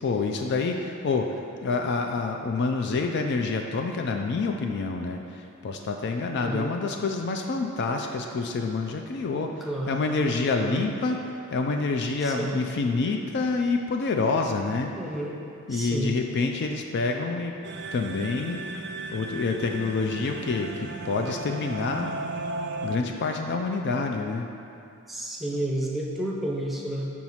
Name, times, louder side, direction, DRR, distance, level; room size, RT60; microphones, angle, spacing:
voice 1, 0.0-11.2 11.5-14.9 15.7-17.5 17.9-18.6 19.1-22.2 22.8-24.5, left 3 dB, 50° left, 3 dB, 0.4 m, -27 dB
voice 2, 6.4-6.7 9.6-10.0 10.6-10.9 12.2-12.6 15.0-15.4 15.7-16.1 25.1-27.1, right 1 dB, ahead, -4 dB, 0.7 m, -31 dB
sound 1, 17.6-23.0, right 2 dB, 50° right, 0.4 m, -36 dB
4.9 x 4.6 x 5.5 m, 2.6 s
head